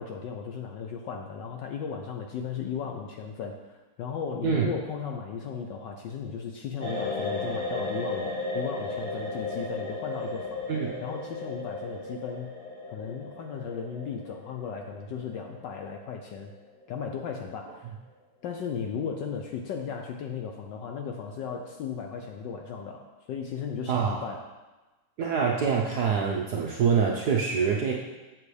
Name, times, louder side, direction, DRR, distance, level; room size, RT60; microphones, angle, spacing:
voice 1, 0.0-10.6 11.0-12.6 12.9-16.5 16.9-17.9 18.4-24.5, left 6 dB, 70° left, 3 dB, 1.1 m, -36 dB
sound 1, 6.8-16.7 17.0-17.2, left 2 dB, 20° left, 1.9 m, -35 dB
voice 2, 23.9-24.2 25.2-27.9, right 6 dB, 70° right, -1 dB, 0.9 m, -25 dB
7.7 x 7.5 x 3.2 m, 1.2 s
omnidirectional pair, 2.4 m